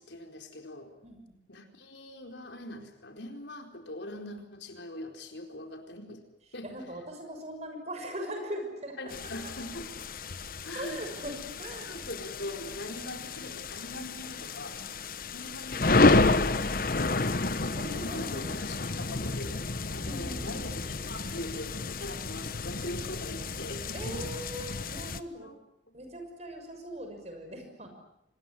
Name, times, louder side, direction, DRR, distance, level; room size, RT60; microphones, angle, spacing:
voice 1, 0.0-0.9 1.5-6.2 6.5-6.7 9.0-10.0 10.6-11.1 11.4-11.5 11.9-14.8 15.3-17.3 17.7-24.2 25.4-25.5, left 1 dB, 80° left, 5 dB, 4.4 m, -42 dB
voice 2, 1.0-1.3 6.6-9.5 10.7-12.1 17.7-18.7 20.0-20.6 23.9-25.5 25.9-27.9, equal, 35° right, 5 dB, 6.5 m, -40 dB
sound 1, 9.1-25.2, left 3 dB, 50° left, 1.1 m, -30 dB
26.0 x 21.0 x 9.9 m, 0.80 s
head